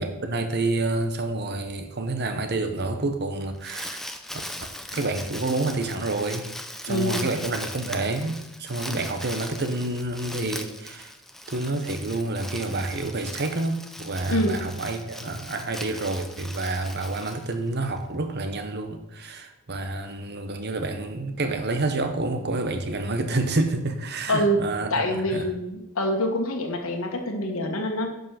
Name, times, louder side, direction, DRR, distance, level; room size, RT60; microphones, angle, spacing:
voice 1, 0.0-4.1 4.9-6.5 6.8-11.1 11.5-25.5, right 2 dB, 50° right, 7 dB, 1.1 m, -28 dB
Crumpling crinkling, 3.4-18.0, left 1 dB, ahead, 0.5 m, -39 dB
voice 2, 6.9-7.3 14.3-14.6 24.3-24.6 24.9-28.1, equal, 65° left, 1 dB, 1.4 m, -25 dB
10.0 x 5.4 x 5.9 m, 0.92 s
head